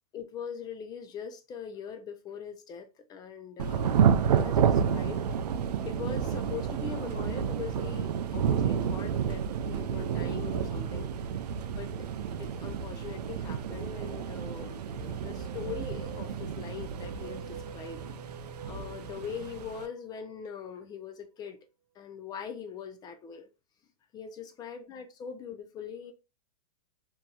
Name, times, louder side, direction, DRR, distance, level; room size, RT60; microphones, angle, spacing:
voice 1, 0.1-5.2 5.9-11.1 11.8-12.1 12.4-18.0 18.6-21.6 22.0-23.5 24.1-26.1, left 7 dB, 20° left, 0.4 m, -42 dB
Thunder / Rain, 3.6-19.9, right 7 dB, 90° right, 0.4 m, -30 dB
sound 1, 15.0-21.1, right 7 dB, 45° right, 0.6 m, -46 dB
2.9 x 2.7 x 2.2 m
hypercardioid pair, 130°, 20 cm